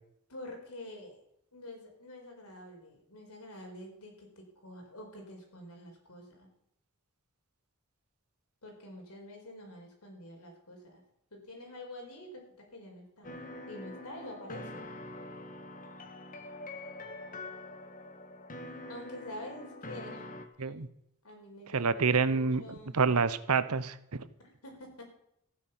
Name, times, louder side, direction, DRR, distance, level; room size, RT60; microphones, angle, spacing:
voice 1, 0.3-1.2 1.5-6.5 8.6-11.0 11.3-13.3 13.7-14.9 18.9-20.2 20.6-20.8 21.2-23.0 24.4-25.0, left 1 dB, 85° left, 2 dB, 4.8 m, -47 dB
sound 1, 13.2-20.5, left 2 dB, 40° left, 1.5 m, -44 dB
voice 2, 21.7-22.6 22.9-24.3, right 5 dB, 80° right, 14 dB, 0.9 m, -27 dB
15.0 x 9.8 x 5.8 m, 0.76 s
head